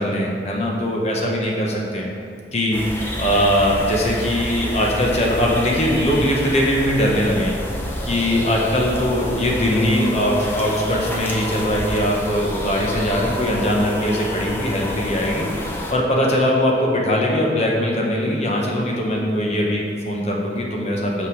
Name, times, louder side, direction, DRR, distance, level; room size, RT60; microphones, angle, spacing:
voice 1, 0.0-2.1 2.5-7.6 8.0-15.5 15.9-21.3, equal, 35° left, -1 dB, 1.0 m, -21 dB
sound 1, 2.7-15.9, left 1 dB, 10° left, 0.7 m, -29 dB
6.0 x 5.9 x 4.7 m, 2.5 s
head